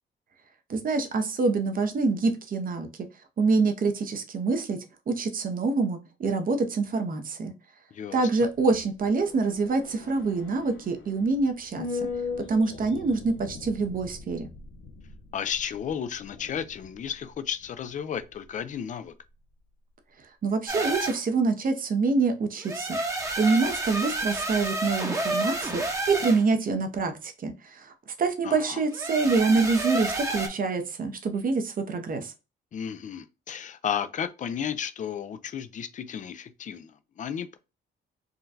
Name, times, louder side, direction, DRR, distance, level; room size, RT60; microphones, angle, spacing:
voice 1, 0.7-2.9 3.4-4.8 5.1-7.5 8.1-11.9 12.5-14.5 20.4-23.0 23.4-32.3, right 4 dB, 45° right, 0.8 m, -26 dB
voice 2, 7.9-8.5 15.3-19.1 28.4-28.8 32.7-37.6, left 8 dB, 40° left, 0.4 m, -33 dB
sound 1, 8.5-18.8 19.1-19.2, left 4 dB, 70° left, 0.7 m, -40 dB
sound 2, 20.7-21.2 22.6-26.4 28.9-30.5, right 2 dB, 15° right, 0.9 m, -30 dB
3.7 x 2.2 x 2.6 m
cardioid pair, 90°, 20 cm